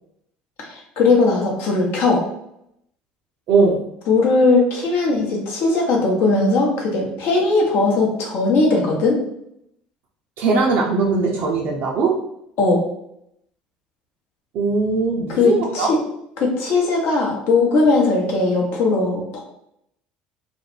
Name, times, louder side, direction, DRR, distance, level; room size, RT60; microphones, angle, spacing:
voice 1, 0.6-2.3 4.1-9.2 12.6-12.8 15.4-16.0 16.4-19.4, left 3 dB, 60° left, -1 dB, 0.8 m, -18 dB
voice 2, 3.5-3.8 10.4-12.2 14.5-15.9, right 4 dB, 60° right, -2 dB, 0.4 m, -20 dB
2.4 x 2.1 x 3.1 m, 0.78 s
hypercardioid pair, 70°, 4 cm